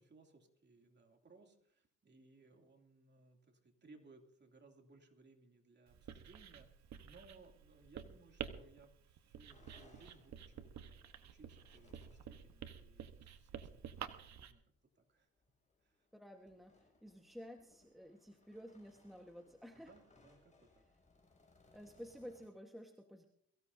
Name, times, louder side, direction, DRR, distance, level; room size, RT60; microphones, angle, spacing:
voice 1, 0.0-6.7 7.0-14.6 15.0-15.3 15.8-16.1 19.7-20.8 21.6-21.7, right 3 dB, 35° right, 2 dB, 2.8 m, -64 dB
Writing, 5.9-14.5, right 8 dB, 65° right, 1.2 m, -50 dB
sound 1, 9.5-13.0 14.0-14.1 14.5-14.7 15.1-22.5, left 3 dB, 25° left, 7.0 m, -69 dB
voice 2, 16.1-19.9 21.7-23.2, equal, ahead, 3 dB, 1.4 m, -53 dB
22.5 x 15.5 x 2.8 m, 0.67 s
cardioid pair, 90°, 30 cm